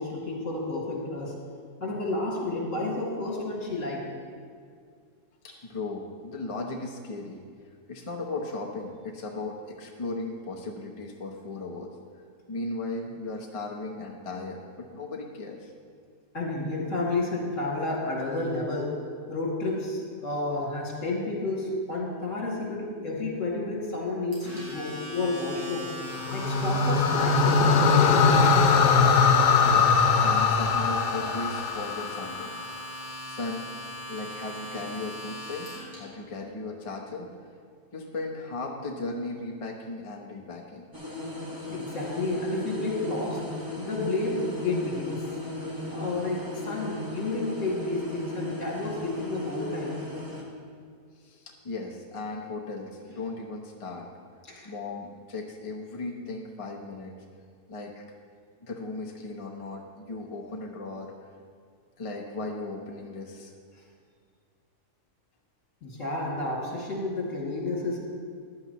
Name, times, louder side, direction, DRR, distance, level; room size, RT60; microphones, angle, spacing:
voice 1, 0.0-1.3 1.8-4.1 5.5-5.6 16.3-18.9 19.3-25.9 26.3-28.3 41.7-43.4 43.8-45.2 45.9-50.0 54.5-54.7 65.8-68.0, left 2 dB, 50° left, -4 dB, 2.7 m, -31 dB
voice 2, 5.6-7.4 7.9-12.0 12.5-15.7 29.6-32.6 33.3-33.7 34.1-37.3 37.9-40.9 51.2-54.1 54.6-57.1 57.7-58.0 58.6-61.1 62.0-63.5, left 2 dB, 30° left, -1 dB, 0.7 m, -36 dB
Domestic sounds home sounds, 24.3-36.0, left 1 dB, 70° right, 4.2 m, -39 dB
sound 1, 26.1-32.5, left 5 dB, 85° left, 1.3 m, -21 dB
sound 2, 40.9-50.4, left 2 dB, 15° right, 1.4 m, -37 dB
15.0 x 10.5 x 3.1 m, 2.1 s
omnidirectional pair, 1.7 m